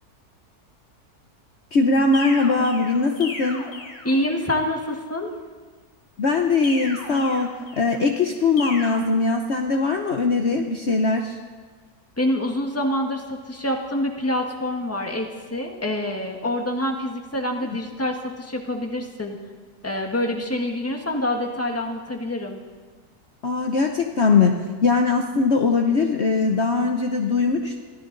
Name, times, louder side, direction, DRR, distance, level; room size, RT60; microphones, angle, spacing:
voice 1, 1.7-3.7 6.2-11.4 23.4-27.8, left 4 dB, 50° left, 3 dB, 1.1 m, -21 dB
sound 1, 2.1-4.6 6.6-8.0 8.6-9.0, left 2 dB, 85° left, 2.4 m, -36 dB
voice 2, 4.0-5.3 12.2-19.4 19.8-22.6, left 1 dB, 10° left, 3 dB, 1.5 m, -26 dB
24.0 x 15.0 x 4.0 m, 1.5 s
omnidirectional pair, 1.7 m